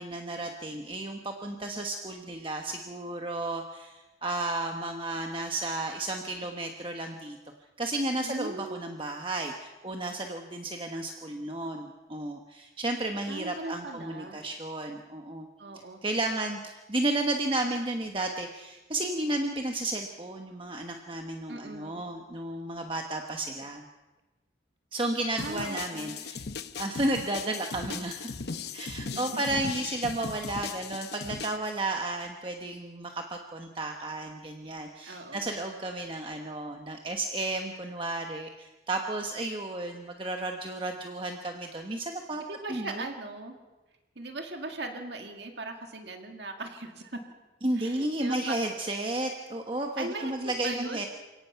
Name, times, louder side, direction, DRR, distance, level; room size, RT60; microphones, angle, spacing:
voice 1, 0.0-7.4 7.8-15.5 16.0-23.8 24.9-26.4 26.8-28.3 28.7-42.4 42.7-43.1 47.6-51.1, right 2 dB, 25° right, 3 dB, 1.2 m, -33 dB
voice 2, 8.2-8.9 13.3-14.4 15.6-16.0 21.5-22.0 25.4-26.2 29.1-29.2 29.8-29.9 35.0-35.5 42.5-43.6 44.2-47.2 47.7-48.8 50.0-51.0, right 2 dB, 60° right, 4 dB, 2.0 m, -39 dB
sound 1, 25.4-31.6, left 5 dB, 55° left, 0.8 m, -38 dB
28.5 x 17.5 x 5.8 m, 1.1 s
head